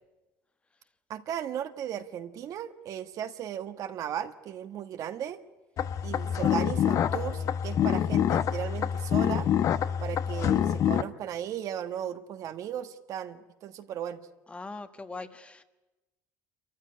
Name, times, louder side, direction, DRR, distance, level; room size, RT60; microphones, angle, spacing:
voice 1, 1.1-5.4 6.0-9.5 10.0-14.2, right 10 dB, 55° right, 9 dB, 1.4 m, -36 dB
sound 1, 5.8-11.0, left 9 dB, 50° left, 0.9 m, -26 dB
voice 2, 14.5-15.6, left 3 dB, 20° left, 9 dB, 1.4 m, -41 dB
27.0 x 15.0 x 9.9 m, 1.1 s
cardioid pair, 120°, 7 cm